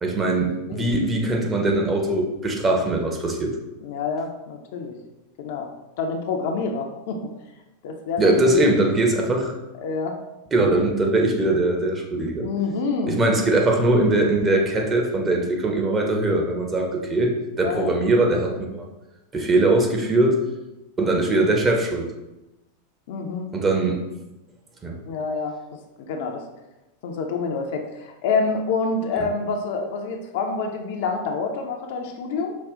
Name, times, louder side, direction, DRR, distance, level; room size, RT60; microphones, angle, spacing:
voice 1, 0.0-3.6 8.2-9.5 10.5-12.5 13.1-18.8 19.3-20.4 21.0-22.1 23.5-24.0 24.8-25.0 29.2-29.3, right 2 dB, 20° right, 1 dB, 0.8 m, -21 dB
voice 2, 3.8-5.0 5.4-5.7 6.0-7.2 7.8-8.6 9.8-10.2 12.4-13.2 17.6-17.9 23.1-23.5 25.0-25.5 26.1-26.4 27.0-32.6, left 4 dB, 50° left, 3 dB, 0.5 m, -27 dB
5.1 x 2.3 x 3.6 m, 0.98 s
figure-of-eight pair, 90°, 0 cm